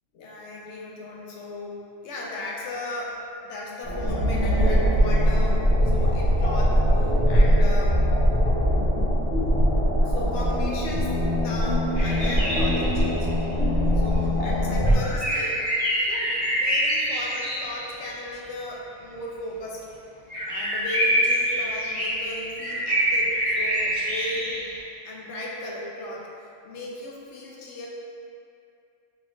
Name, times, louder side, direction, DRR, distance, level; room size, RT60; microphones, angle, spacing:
voice 1, 0.1-5.6 5.8-8.0 10.0-13.3 13.9-15.6 15.9-19.8 20.4-24.6 25.0-26.3 26.6-27.9, left 1 dB, 90° left, -3 dB, 1.0 m, -36 dB
sound 1, 3.8-14.9, equal, 70° left, 1.5 m, -21 dB
sound 2, 11.9-13.2 15.0-18.0 20.3-24.8, equal, 15° right, 1.3 m, -26 dB
3.8 x 3.4 x 2.4 m, 2.5 s
omnidirectional pair, 1.1 m